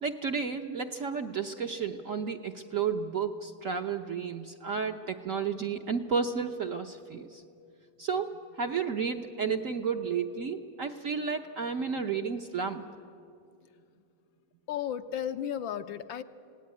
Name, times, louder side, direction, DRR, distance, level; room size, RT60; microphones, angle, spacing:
voice 1, 0.0-7.4 8.0-12.8, right 6 dB, 50° right, 4 dB, 1.0 m, -32 dB
voice 2, 14.7-16.2, left 9 dB, 75° left, 9 dB, 1.5 m, -34 dB
27.0 x 18.0 x 9.6 m, 2.4 s
omnidirectional pair, 2.3 m